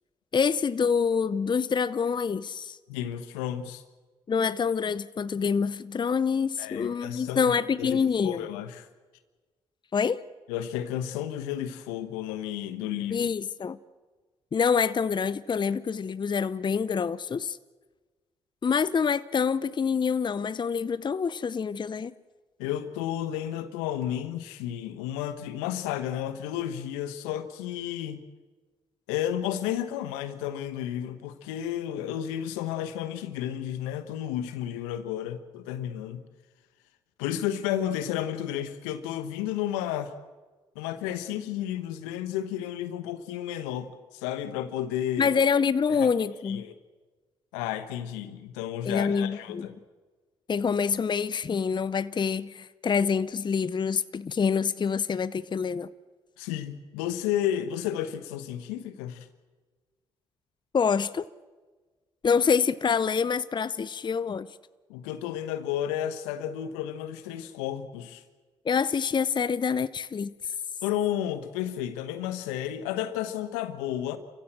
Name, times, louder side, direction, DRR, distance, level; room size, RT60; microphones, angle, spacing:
voice 1, 0.3-2.8 4.3-8.5 9.9-10.2 13.1-13.8 14.5-17.6 18.6-22.1 45.2-46.6 48.8-49.7 50.5-55.9 60.7-61.3 62.2-64.5 68.6-70.3, left 6 dB, 35° left, 0.6 m, -26 dB
voice 2, 2.9-3.8 6.6-8.0 8.2-8.9 10.5-13.3 22.6-28.3 29.1-36.2 37.2-40.1 40.7-45.3 46.0-46.1 46.4-46.7 47.5-49.8 56.4-59.3 64.9-68.2 70.8-74.2, left 11 dB, 80° left, 1.2 m, -32 dB
28.5 x 15.5 x 7.6 m
hypercardioid pair, 45°, 13 cm